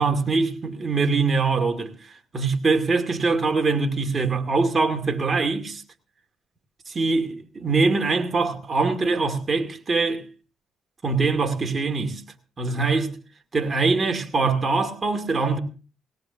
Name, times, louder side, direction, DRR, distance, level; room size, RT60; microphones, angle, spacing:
voice 1, 0.0-5.8 6.9-10.3 11.0-12.2 12.6-13.1 13.5-15.6, right 4 dB, 35° right, 2.4 m, -23 dB
20.0 x 18.0 x 2.8 m
cardioid pair, 90°, 0 cm